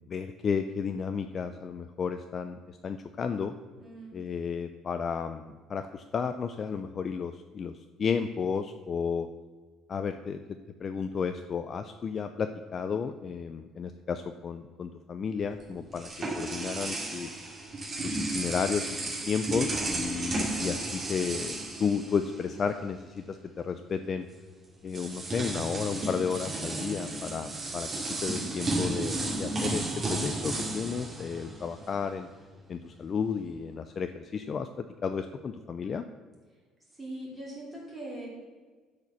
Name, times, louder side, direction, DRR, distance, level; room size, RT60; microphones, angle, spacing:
voice 1, 0.1-3.5 4.1-7.7 8.0-9.3 9.9-16.1 16.4-17.3 18.0-24.3 24.8-27.9 28.2-32.3 32.7-36.0, left 6 dB, 30° left, 9 dB, 0.4 m, -33 dB
voice 2, 3.8-4.2 37.0-38.3, right 1 dB, 5° right, -5 dB, 3.3 m, -41 dB
sound 1, 15.5-22.7 23.0-23.2 24.3-24.4 24.9-32.0, right 2 dB, 25° right, 2.1 m, -33 dB
12.0 x 5.0 x 6.9 m, 1.4 s
cardioid pair, 175°, 0 cm